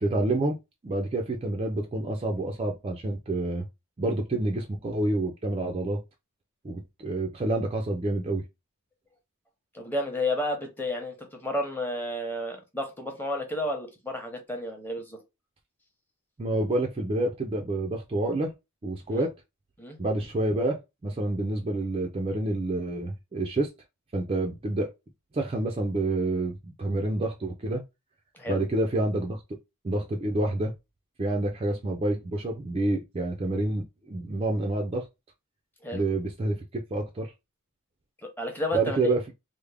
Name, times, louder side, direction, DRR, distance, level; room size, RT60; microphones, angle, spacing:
voice 1, 0.0-0.6 0.8-3.7 4.0-6.0 6.6-8.4 16.4-18.5 18.8-19.3 20.0-23.7 24.1-24.9 25.3-27.8 28.5-29.4 29.8-30.7 31.2-35.1 35.9-37.3 38.7-39.2, right 2 dB, 25° right, 0.4 m, -28 dB
voice 2, 9.7-15.2 19.1-19.3 19.8-20.0 28.3-28.6 35.8-36.0 38.2-39.1, left 1 dB, 10° left, 0.8 m, -31 dB
3.4 x 2.0 x 3.3 m
head